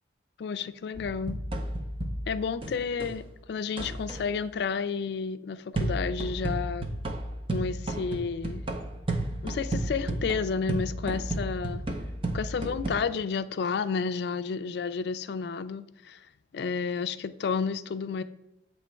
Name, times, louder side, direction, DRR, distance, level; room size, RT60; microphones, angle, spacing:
voice 1, 0.4-1.4 2.3-6.9 7.5-8.6 9.4-11.8 12.3-16.2 16.5-18.2, left 5 dB, 60° left, 11 dB, 0.3 m, -31 dB
sound 1, 0.9-3.2 3.8-4.3 5.8-12.9, right 1 dB, 30° right, 0.6 m, -33 dB
7.8 x 3.0 x 4.4 m, 0.91 s
head